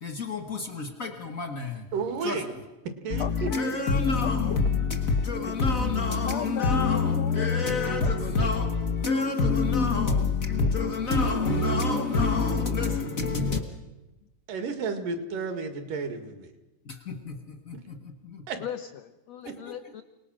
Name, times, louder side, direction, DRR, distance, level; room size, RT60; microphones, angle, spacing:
voice 1, 0.0-1.9 2.2-2.5 3.1-13.6 16.8-18.4 19.4-19.8, left 4 dB, 50° left, 5 dB, 0.9 m, -26 dB
voice 2, 1.9-2.5 3.0-3.5 14.5-16.5 18.5-18.6, right 4 dB, 70° right, 7 dB, 3.6 m, -32 dB
voice 3, 3.2-3.7 4.2-4.7 6.2-8.1 18.6-20.0, left 10 dB, 75° left, 10 dB, 1.6 m, -37 dB
28.5 x 19.5 x 6.4 m, 1.0 s
omnidirectional pair, 4.0 m